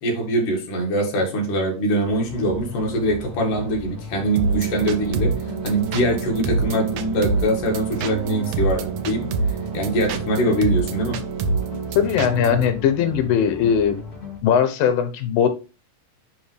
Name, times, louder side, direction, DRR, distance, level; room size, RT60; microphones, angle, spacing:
voice 1, 0.0-11.2, right 1 dB, 70° left, 3.5 m, -23 dB
sound 1, 2.0-14.4, left 3 dB, 20° left, 1.7 m, -37 dB
sound 2, 4.4-12.7, right 4 dB, 75° right, 1.6 m, -26 dB
voice 2, 12.0-14.0 14.4-15.5, left 8 dB, 90° left, 2.8 m, -19 dB
10.5 x 3.8 x 3.3 m
omnidirectional pair, 3.9 m